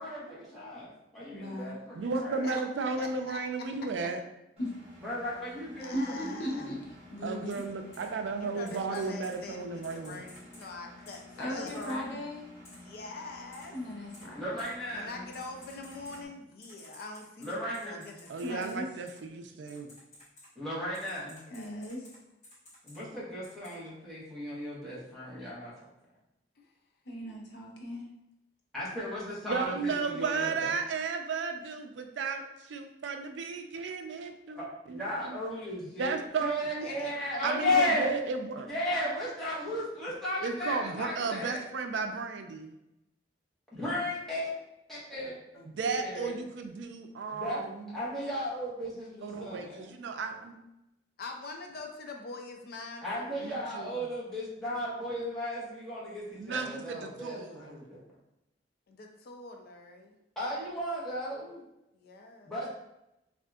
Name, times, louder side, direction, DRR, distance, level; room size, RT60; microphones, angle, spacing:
voice 1, 0.0-2.5 5.0-6.8 11.4-12.1 14.3-15.2 17.4-18.0 20.6-21.4 22.8-25.7 28.7-30.7 34.6-38.1 38.6-41.6 43.7-44.5 44.9-45.4 45.8-46.3 47.3-49.9 53.0-58.0 60.4-61.6 62.4-62.7, left 1 dB, ahead, -9 dB, 1.0 m, -35 dB
voice 2, 1.3-1.7 4.6-4.7 5.9-6.8 7.1-7.6 11.4-12.5 13.7-14.5 18.4-18.9 21.5-22.0 27.1-28.0, equal, 85° left, -1 dB, 0.7 m, -37 dB
voice 3, 1.9-4.2 7.2-10.2 18.3-19.9 29.5-35.4 36.0-36.9 37.4-38.7 40.4-42.8 45.7-48.0 49.2-50.6 53.4-54.0 56.3-57.6, right 4 dB, 85° right, 6 dB, 0.4 m, -34 dB
voice 4, 3.0-3.4 5.8-6.7 8.4-11.2 11.5-11.7 12.7-13.8 14.9-19.0 21.5-21.9 26.6-26.7 36.8-37.1 45.6-45.7 51.2-53.6 58.9-60.2 61.9-62.5, left 3 dB, 60° left, 3 dB, 0.4 m, -44 dB
Engine, 4.6-16.3, left 2 dB, 35° right, 0.9 m, -52 dB
Typing, 7.5-7.6 7.9-8.1 8.7-9.4 9.8-10.7 11.1-11.2 11.7-12.0 12.6-12.8 13.5-13.6 14.1-14.3 14.6-14.7 15.3-16.2 16.6-18.7 19.1-19.2 19.7-20.5 20.9-22.2 22.4-23.0 23.4-23.7, left 1 dB, 40° left, 1.4 m, -53 dB
3.5 x 2.4 x 2.3 m, 0.89 s
head